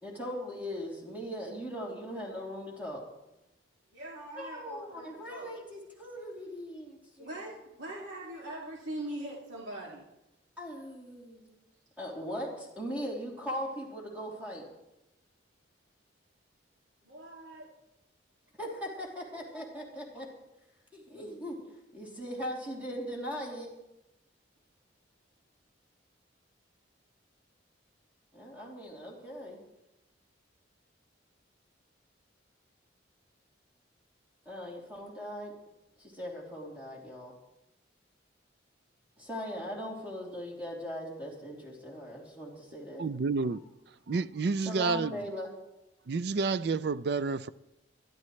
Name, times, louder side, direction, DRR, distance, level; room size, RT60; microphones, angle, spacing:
voice 1, 0.0-3.0 4.3-7.4 10.6-11.6 12.0-14.6 18.6-20.3 20.9-23.7 28.3-29.6 34.4-35.5 36.0-37.3 39.2-43.0 44.6-45.5, equal, 10° right, 3.0 m, -39 dB
voice 2, 3.9-5.5 7.2-10.1 17.0-17.7 21.1-21.2, right 1 dB, 80° right, 2.5 m, -42 dB
voice 3, 43.0-43.6 44.1-45.1 46.1-47.5, right 4 dB, 55° right, 0.4 m, -29 dB
21.0 x 12.5 x 3.2 m
head